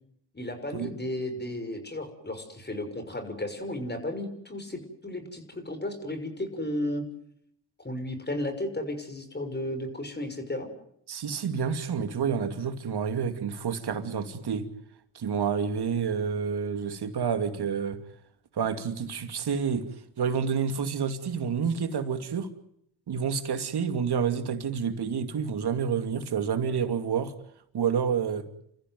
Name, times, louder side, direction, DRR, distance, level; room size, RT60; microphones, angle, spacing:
voice 1, 0.3-7.0 7.8-10.7, left 1 dB, 20° left, 6.3 m, -34 dB
voice 2, 11.1-14.7 15.1-18.0 18.5-19.9 20.2-22.5 23.1-27.3 27.7-28.5, right 6 dB, 50° right, 2.6 m, -29 dB
29.0 x 14.5 x 9.4 m
supercardioid pair, 55°, 48 cm